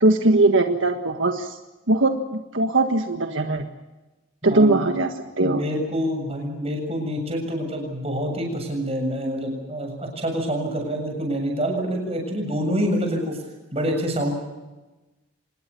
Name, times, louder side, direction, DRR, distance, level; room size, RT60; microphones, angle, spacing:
voice 1, 0.0-1.6 1.9-3.7 4.4-5.6, right 2 dB, 80° right, 5 dB, 1.6 m, -20 dB
voice 2, 4.4-4.8 5.4-13.4 13.7-14.3, equal, 30° right, 3 dB, 7.3 m, -26 dB
26.5 x 20.0 x 7.0 m, 1.1 s
head